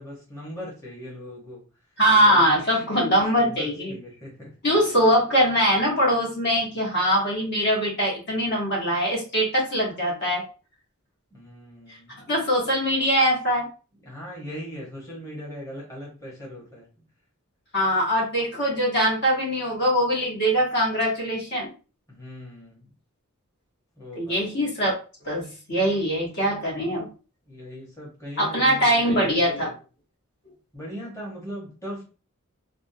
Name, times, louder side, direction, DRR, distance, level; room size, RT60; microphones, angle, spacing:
voice 1, 0.0-1.6 2.2-2.6 2.9-4.5 11.3-12.2 14.0-16.9 22.1-22.9 24.0-24.4 26.7-27.0 27.5-29.7 30.7-32.0, equal, 15° left, -4 dB, 1.0 m, -39 dB
voice 2, 2.0-3.9 4.6-10.4 12.3-13.7 17.7-21.7 24.1-24.9 25.2-27.1 28.4-29.7, equal, 50° left, -3 dB, 1.1 m, -22 dB
3.5 x 2.1 x 2.6 m, 0.34 s
head